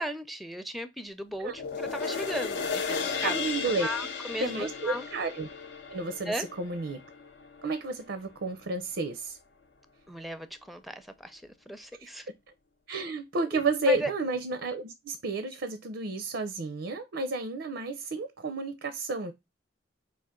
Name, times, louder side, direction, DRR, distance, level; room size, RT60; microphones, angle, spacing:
voice 1, 0.0-3.4 3.8-5.1 6.3-6.5 10.1-12.3 13.5-14.1, equal, ahead, 0.4 m, -36 dB
Cymbal Swish Short, 1.5-8.1 8.5-8.6, left 5 dB, 70° left, 0.6 m, -35 dB
voice 2, 3.2-3.9 4.4-5.5 5.9-7.0 7.6-9.4 12.0-12.1 12.9-19.3, right 3 dB, 85° right, 0.6 m, -31 dB
4.8 x 2.5 x 3.6 m
head